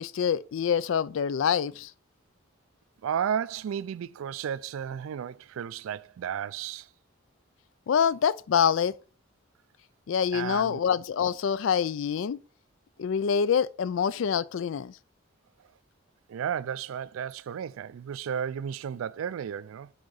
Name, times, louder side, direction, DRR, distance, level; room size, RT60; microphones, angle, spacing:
voice 1, 0.0-1.9 7.9-8.9 10.1-12.4 13.0-14.9, left 7 dB, 70° left, 0.3 m, -26 dB
voice 2, 3.0-6.9 10.3-10.8 16.3-19.9, right 8 dB, 80° right, 0.3 m, -33 dB
9.7 x 3.8 x 3.9 m
head